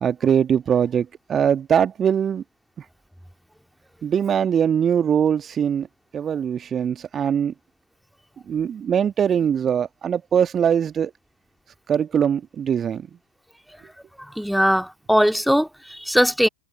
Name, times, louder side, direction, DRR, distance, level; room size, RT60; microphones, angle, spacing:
voice 1, 0.0-2.4 4.0-5.9 6.1-7.5 8.5-11.1 11.9-13.1, right 8 dB, 25° right, 1.6 m, -21 dB
voice 2, 14.4-16.5, equal, ahead, 2.1 m, -20 dB
figure-of-eight pair, 90°, 0 cm